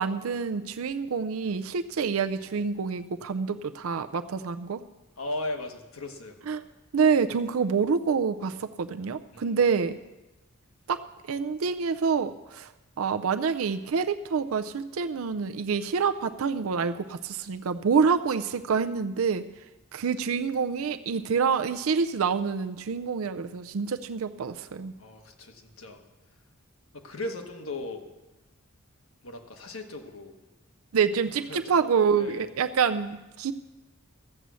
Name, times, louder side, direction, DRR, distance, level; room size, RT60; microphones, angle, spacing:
voice 1, 0.0-4.8 6.5-6.6 6.9-10.0 10.9-12.7 13.0-19.4 19.9-24.9 30.9-33.5, right 5 dB, 80° right, 8 dB, 0.5 m, -27 dB
voice 2, 5.2-6.6 9.3-9.6 25.0-26.0 26.9-28.1 29.2-30.3 31.5-31.8 32.2-32.5, left 2 dB, 80° left, 4 dB, 1.3 m, -37 dB
13.5 x 8.1 x 6.3 m, 1.1 s
head